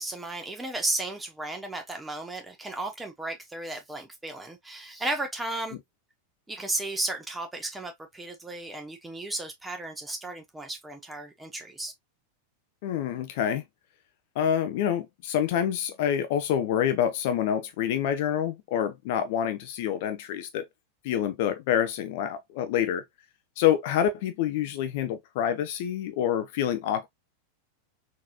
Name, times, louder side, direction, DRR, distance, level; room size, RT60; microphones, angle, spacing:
voice 1, 0.0-5.8 6.5-11.9, right 2 dB, 10° right, 1.0 m, -34 dB
voice 2, 12.8-13.6 14.4-20.7 21.0-23.0 23.6-27.1, left 10 dB, 50° left, 0.5 m, -27 dB
3.9 x 2.9 x 2.3 m
figure-of-eight pair, 90°, 0 cm